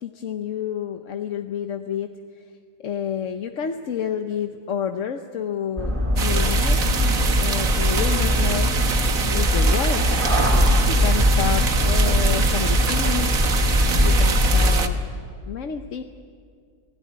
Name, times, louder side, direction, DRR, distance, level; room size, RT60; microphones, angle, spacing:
voice 1, 0.0-2.5 2.8-6.9 7.4-8.7 9.3-10.3 10.8-13.4 14.0-15.0 15.5-16.0, left 8 dB, 55° left, 6 dB, 1.2 m, -29 dB
sound 1, 5.8-14.7, equal, 20° right, 5.0 m, -20 dB
sound 2, 6.2-14.9, right 5 dB, 60° right, 1.8 m, -26 dB
29.0 x 17.5 x 9.5 m, 2.1 s
omnidirectional pair, 1.7 m